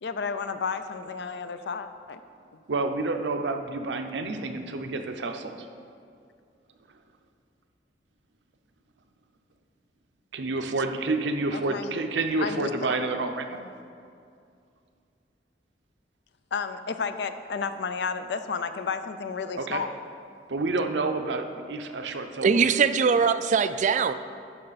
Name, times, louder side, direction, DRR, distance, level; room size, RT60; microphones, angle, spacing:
voice 1, 0.0-2.2 11.5-11.9 12.4-12.7 16.5-19.9, left 5 dB, 70° left, 10 dB, 0.5 m, -32 dB
voice 2, 2.7-5.5 10.3-13.6 19.6-19.8 20.5-22.8, right 3 dB, 80° right, 6 dB, 0.6 m, -29 dB
voice 3, 22.4-24.1, right 6 dB, 45° right, 12 dB, 0.3 m, -21 dB
12.0 x 5.6 x 4.1 m, 2.4 s
head